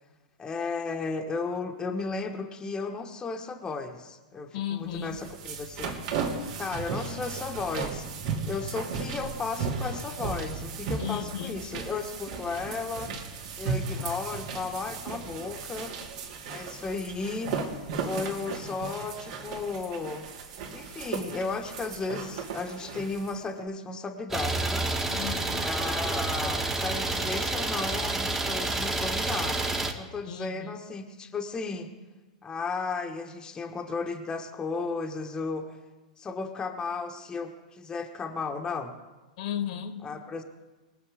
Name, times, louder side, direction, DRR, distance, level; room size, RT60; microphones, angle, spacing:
voice 1, 0.4-6.0 6.6-8.1 8.5-13.1 13.6-15.9 16.5-17.6 18.0-20.3 20.7-24.8 25.6-29.6 29.9-31.9 32.4-35.8 36.2-39.0 40.0-40.4, left 4 dB, 20° left, 4 dB, 1.3 m, -34 dB
voice 2, 4.5-5.2 11.0-11.5 25.1-25.7 30.2-30.8 39.4-40.0, left 10 dB, 60° left, 8 dB, 1.6 m, -34 dB
sound 1, 5.0-23.4, right 5 dB, 55° right, 2.5 m, -35 dB
Idling, 24.3-29.9, right 2 dB, 10° right, 1.5 m, -29 dB
22.0 x 7.3 x 5.0 m, 1.2 s
hypercardioid pair, 105°, 4 cm